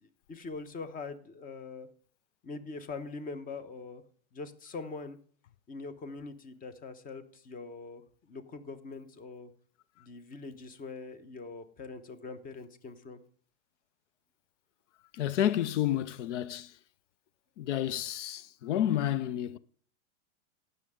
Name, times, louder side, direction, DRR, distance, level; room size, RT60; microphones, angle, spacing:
voice 1, 0.0-1.9 2.4-4.0 4.3-5.2 5.7-8.0 8.3-9.5 10.0-13.2, left 4 dB, 25° left, 1.1 m, -43 dB
voice 2, 15.1-16.8 17.6-19.6, left 11 dB, 80° left, 0.6 m, -30 dB
17.5 x 6.7 x 3.6 m
supercardioid pair, 130°, 35 cm